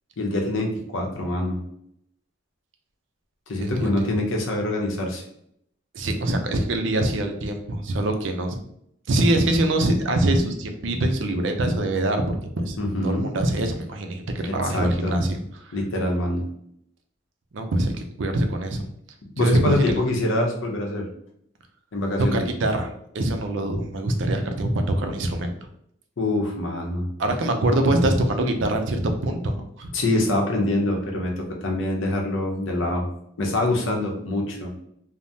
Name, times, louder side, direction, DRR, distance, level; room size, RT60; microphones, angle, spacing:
voice 1, 0.2-1.6 3.5-5.2 12.8-13.2 14.5-15.2 15.7-16.4 19.4-21.1 21.9-22.4 26.2-27.1 29.9-33.1 33.4-34.7, left 1 dB, 80° left, 1 dB, 0.7 m, -25 dB
voice 2, 3.6-4.2 5.9-8.6 9.1-12.8 13.0-15.7 17.5-18.9 19.4-20.0 22.3-25.5 27.2-29.9, right 1 dB, 70° right, 5 dB, 0.5 m, -24 dB
3.3 x 2.0 x 2.7 m, 0.72 s
head